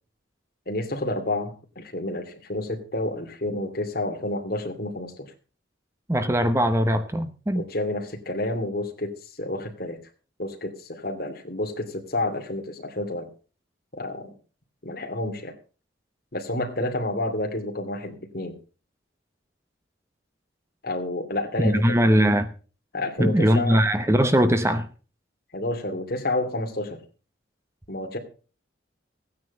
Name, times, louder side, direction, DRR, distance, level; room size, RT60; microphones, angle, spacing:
voice 1, 0.7-5.3 7.5-10.0 10.4-13.3 14.0-14.3 14.8-15.5 16.3-18.6 20.8-21.9 22.9-23.8 25.5-27.0 27.9-28.2, left 1 dB, 50° left, 2.6 m, -30 dB
voice 2, 6.1-7.7 21.6-22.5 23.2-24.9, equal, 15° right, 0.8 m, -21 dB
15.5 x 9.6 x 5.4 m
head